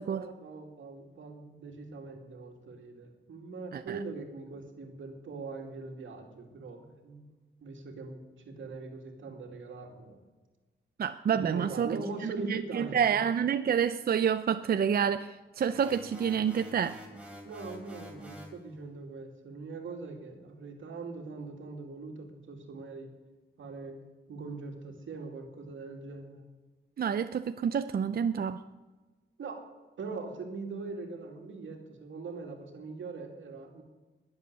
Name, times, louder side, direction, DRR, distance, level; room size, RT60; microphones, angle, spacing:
voice 1, 0.0-7.3 7.6-10.2 11.3-13.2 17.4-23.1 23.6-24.0 24.3-26.4 29.4-29.6 30.0-33.8, right 3 dB, 90° right, 3 dB, 2.5 m, -41 dB
voice 2, 11.0-12.0 12.2-17.0 27.0-28.6, right 7 dB, 50° right, 11 dB, 0.5 m, -28 dB
sound 1, 15.7-18.6, equal, 5° right, 3.5 m, -47 dB
21.0 x 8.0 x 6.8 m, 1.2 s
wide cardioid pair, 100°, 20 cm